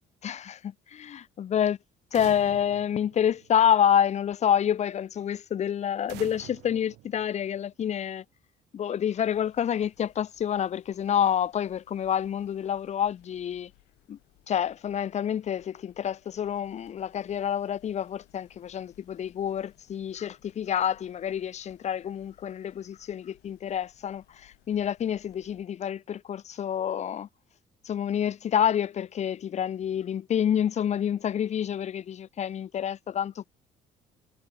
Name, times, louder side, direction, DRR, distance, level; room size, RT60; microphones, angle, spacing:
voice 1, 0.2-1.8 2.1-8.2 8.7-13.7 14.1-14.2 14.5-27.3 27.8-33.4, left 9 dB, 40° left, 0.8 m, -28 dB
sound 1, 2.1-3.9 6.1-7.9, right 18 dB, 85° right, 4.3 m, -47 dB
sound 2, 9.2-25.7, left 19 dB, 90° left, 3.6 m, -63 dB
cardioid pair, 110°, 17 cm